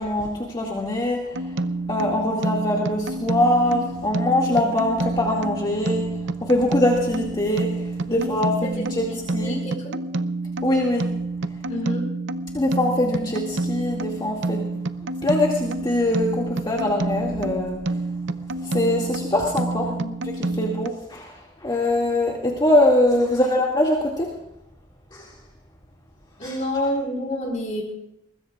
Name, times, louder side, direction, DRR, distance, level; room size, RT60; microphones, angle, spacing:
voice 1, 0.0-1.5 1.9-6.1 6.4-9.6 10.6-11.1 12.5-14.7 15.2-18.0 18.6-19.9 20.2-24.3 25.1-25.3 26.4-26.6, left 1 dB, 25° left, -3 dB, 2.3 m, -23 dB
sound 1, 1.3-20.9, right 2 dB, 65° right, 0.7 m, -29 dB
voice 2, 9.4-10.0 11.7-12.1 19.8-20.2 23.3-23.6 26.4-27.9, equal, 40° left, -1 dB, 4.8 m, -28 dB
23.5 x 20.5 x 2.5 m, 0.83 s
head